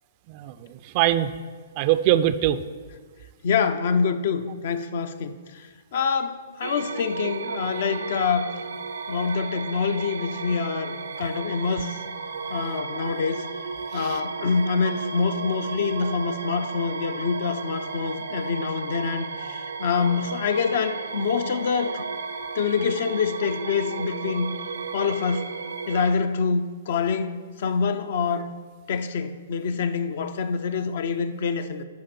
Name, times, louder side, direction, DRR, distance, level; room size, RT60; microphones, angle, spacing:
voice 1, 0.3-1.3 1.8-2.6 13.9-14.2, right 12 dB, 40° right, 13 dB, 0.4 m, -23 dB
voice 2, 3.4-5.6 5.9-8.5 9.1-12.0 12.5-13.4 13.9-22.0 22.5-24.5 24.9-25.5 25.9-28.5 28.9-31.8, left 5 dB, 60° left, 10 dB, 0.5 m, -26 dB
sound 1, 6.6-26.1, right 4 dB, 80° right, 0.6 m, -34 dB
10.5 x 5.2 x 4.3 m, 1.5 s
hypercardioid pair, 125°, 0 cm